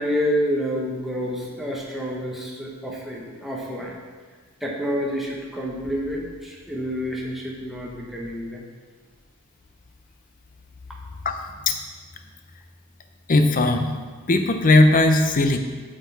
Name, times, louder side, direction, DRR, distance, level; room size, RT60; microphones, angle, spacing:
voice 1, 0.0-4.0 4.6-8.7, equal, ahead, -4 dB, 0.9 m, -28 dB
voice 2, 13.3-13.9 14.3-15.6, left 2 dB, 40° left, 6 dB, 0.6 m, -17 dB
8.9 x 6.3 x 4.0 m, 1.5 s
head